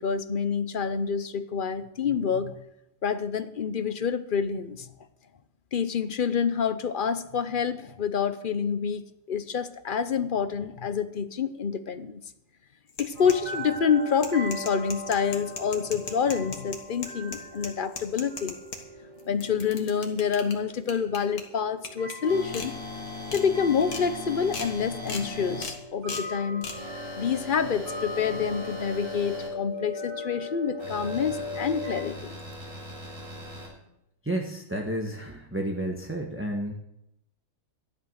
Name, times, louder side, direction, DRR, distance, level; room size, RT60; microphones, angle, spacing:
voice 1, 0.0-2.6 3.0-4.9 5.7-12.2 13.0-18.6 19.3-22.7 23.3-26.7 27.2-32.4, left 6 dB, 45° left, 12 dB, 0.7 m, -27 dB
sound 1, 12.9-13.7 14.1-18.8 19.2-20.5 20.9-21.4 21.8-22.1 22.5-22.7 23.1-23.4 23.8-24.0 24.5-24.7 25.1-25.2 25.6-25.8 26.1-26.3 26.6-26.8, left 4 dB, 70° left, 2.3 m, -37 dB
sound 2, 13.1-32.0, left 2 dB, 75° right, 6.2 m, -39 dB
sound 3, 22.3-25.6 26.7-29.5 30.8-33.7, left 1 dB, 50° right, 5.2 m, -40 dB
voice 2, 34.2-36.7, right 1 dB, 10° right, 1 dB, 1.2 m, -31 dB
13.0 x 11.0 x 6.3 m, 0.81 s
omnidirectional pair, 1.7 m